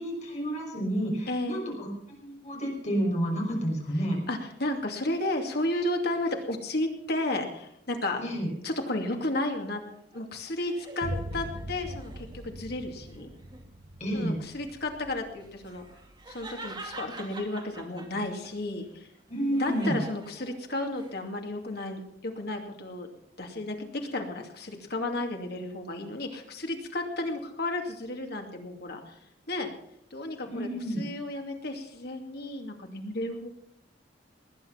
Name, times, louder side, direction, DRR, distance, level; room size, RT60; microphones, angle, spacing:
voice 1, 0.0-1.9 2.2-4.2 8.2-8.5 14.0-14.4 19.3-20.0 30.4-31.1, equal, 40° left, -1 dB, 5.8 m, -30 dB
voice 2, 1.3-1.7 3.9-8.2 8.6-9.8 10.1-13.3 14.1-15.9 16.3-19.1 19.5-23.1 23.4-29.2 29.5-29.7 30.1-30.7 31.0-33.5, left 1 dB, 60° left, 3 dB, 2.6 m, -33 dB
sound 1, 9.4-12.5 13.0-13.7 15.4-18.5 18.9-21.1, right 2 dB, 25° right, 2.4 m, -46 dB
Boom, 11.0-18.8, right 1 dB, 55° right, 1.1 m, -42 dB
19.5 x 9.6 x 5.8 m, 0.73 s
head